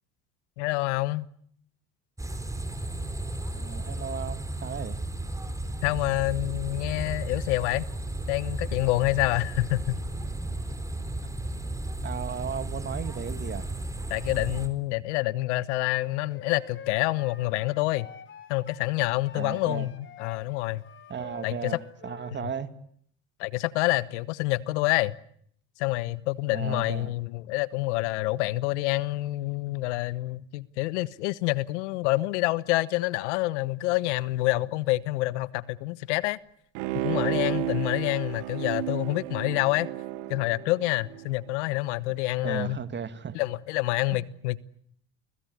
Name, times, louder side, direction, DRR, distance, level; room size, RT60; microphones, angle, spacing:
voice 1, 0.6-1.3 5.8-7.9 8.3-10.0 14.1-18.1 18.5-20.8 21.4-21.8 22.4-22.5 23.4-25.2 25.8-36.4 36.9-39.9 40.3-42.8 43.3-44.6, left 19 dB, 85° left, 1.2 m, -27 dB
sound 1, 2.2-14.7, right 1 dB, 10° right, 4.1 m, -34 dB
voice 2, 3.5-5.0 12.0-13.7 19.3-19.9 21.1-22.7 26.5-27.1 42.4-43.4 44.1-44.2, right 7 dB, 30° right, 2.5 m, -35 dB
Wind instrument woodwind instrument, 16.1-18.9 19.2-22.4, left 6 dB, 35° left, 4.6 m, -47 dB
Bowed string instrument, 36.7-41.4 41.8-41.9, right 15 dB, 75° right, 2.5 m, -32 dB
29.5 x 21.0 x 9.6 m
supercardioid pair, 100°, 34 cm